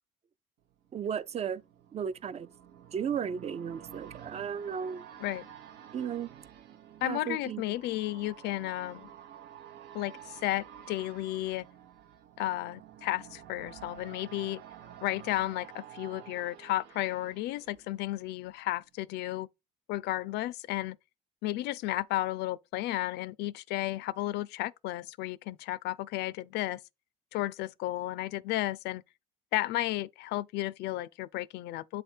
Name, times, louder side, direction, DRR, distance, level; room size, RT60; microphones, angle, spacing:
sound 1, 0.7-18.5 18.9-19.0, right 10 dB, 85° right, 0.9 m, -51 dB
voice 1, 0.9-1.6 1.9-2.5 2.9-5.0 5.9-6.3 7.0-7.6, right 7 dB, 40° right, 0.5 m, -34 dB
voice 2, 7.0-9.1 9.9-11.7 12.4-14.6 15.0-19.5 19.9-21.0 21.4-26.8 27.3-29.0 29.5-32.0, left 16 dB, 80° left, 0.4 m, -33 dB
8.0 x 3.4 x 4.4 m
cardioid pair, 110°, 17 cm